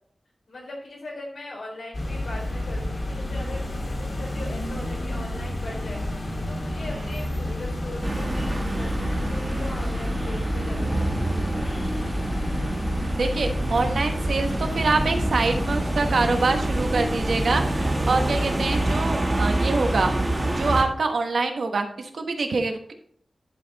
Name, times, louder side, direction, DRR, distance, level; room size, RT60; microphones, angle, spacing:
voice 1, 0.5-3.7 4.0-11.8, left 2 dB, 90° left, -1 dB, 3.7 m, -40 dB
sound 1, 1.9-19.1, left 1 dB, 50° left, 1.8 m, -31 dB
sound 2, 8.0-20.8, right 1 dB, 25° right, 1.6 m, -26 dB
voice 2, 13.2-20.1 20.6-22.9, right 3 dB, 80° right, 5 dB, 1.2 m, -25 dB
11.0 x 5.5 x 4.1 m, 0.64 s
wide cardioid pair, 115°, 0 cm